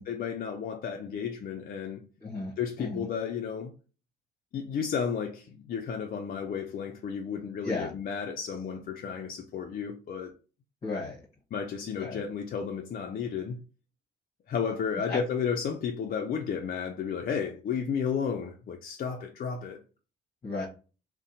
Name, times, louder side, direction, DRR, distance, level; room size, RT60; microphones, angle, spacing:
voice 1, 0.0-2.0 2.6-3.7 4.5-10.3 11.5-13.6 14.5-19.8, left 7 dB, 45° left, 0.4 m, -33 dB
voice 2, 2.2-2.5 2.8-3.1 7.6-7.9 10.8-11.2 11.9-12.2 15.1-15.2 20.4-20.7, left 3 dB, 30° left, 0.9 m, -34 dB
2.7 x 2.1 x 2.6 m
cardioid pair, 90°, 20 cm